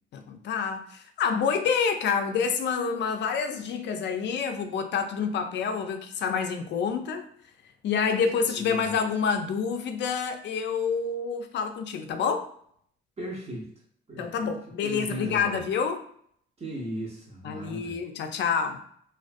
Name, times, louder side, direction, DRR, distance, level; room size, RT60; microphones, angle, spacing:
voice 1, 0.1-7.3 7.8-12.5 14.2-16.0 17.4-18.8, left 6 dB, 65° left, 6 dB, 0.4 m, -28 dB
voice 2, 8.3-9.0 13.2-13.7 14.1-14.5 14.8-15.6 16.6-18.0, right 1 dB, 30° right, -2 dB, 0.6 m, -37 dB
2.4 x 2.2 x 2.5 m, 0.63 s
cardioid pair, 90°, 20 cm